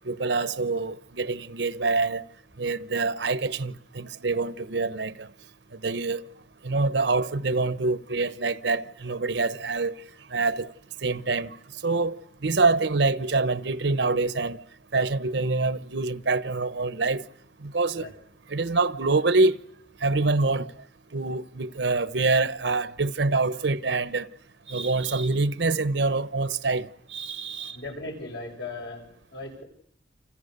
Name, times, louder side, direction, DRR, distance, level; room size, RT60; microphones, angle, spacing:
voice 1, 0.0-2.2 2.6-5.3 5.7-6.2 6.6-10.0 10.3-10.7 11.0-11.6 11.8-14.6 14.9-17.2 17.6-18.1 18.5-19.6 20.0-20.7 21.1-24.3 24.7-27.8, right 3 dB, 70° right, 1.0 m, -25 dB
voice 2, 27.7-29.6, left 2 dB, 75° left, 7.7 m, -38 dB
29.5 x 26.5 x 6.8 m
head